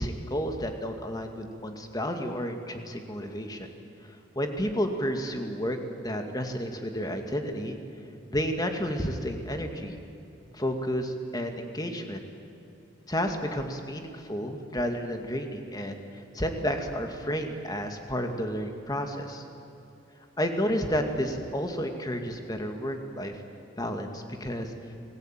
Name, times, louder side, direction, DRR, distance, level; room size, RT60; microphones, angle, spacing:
voice 1, 0.0-3.7 4.1-7.8 8.3-10.0 10.5-12.2 13.1-19.4 20.4-23.3 23.8-24.7, equal, 20° left, 5 dB, 2.4 m, -31 dB
29.5 x 20.5 x 9.2 m, 2.9 s
head